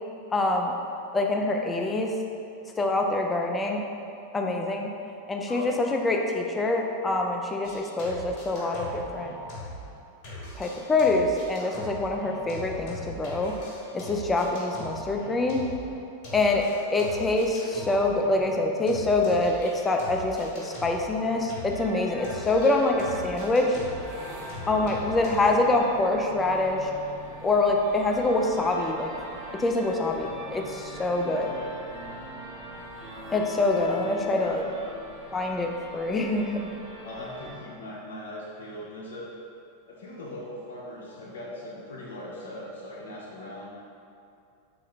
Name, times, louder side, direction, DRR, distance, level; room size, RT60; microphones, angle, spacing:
voice 1, 0.3-0.7 1.1-2.1 2.8-3.8 4.3-4.9 5.3-9.3 10.6-13.5 13.9-15.7 16.3-23.8 24.7-26.9 27.4-29.1 29.5-31.5 33.3-34.6 35.3-36.8, left 2 dB, 15° left, 1 dB, 0.3 m, -25 dB
sound 1, 7.6-10.0 10.2-21.9 22.2-25.5, equal, 40° left, 1.1 m, -41 dB
sound 2, 21.7-37.6, equal, 35° right, 0.9 m, -42 dB
voice 2, 24.6-25.1 31.3-31.8 33.7-34.9 37.0-39.3 39.9-43.7, left 1 dB, 60° left, -5 dB, 0.6 m, -40 dB
3.6 x 2.5 x 3.1 m, 2.5 s
figure-of-eight pair, 90°, 0 cm